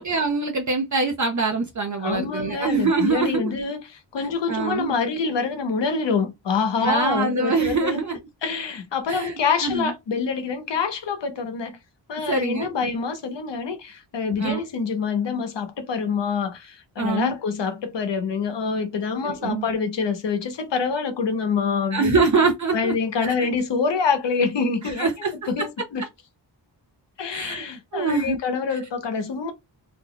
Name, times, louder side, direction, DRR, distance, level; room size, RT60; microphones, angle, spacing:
voice 1, 0.0-3.5 4.5-4.9 6.8-8.2 9.1-9.3 9.6-9.9 12.3-12.7 14.4-14.6 17.0-17.3 19.2-19.7 21.9-22.9 23.2-23.3 25.0-25.3 27.3-27.6 27.9-28.4, right 4 dB, 40° right, 0.5 m, -24 dB
voice 2, 2.0-8.0 8.4-11.8 12.1-22.2 22.7-25.1 25.5-26.0 27.2-29.5, left 5 dB, 70° left, 0.9 m, -26 dB
2.6 x 2.1 x 3.6 m
wide cardioid pair, 160°, 46 cm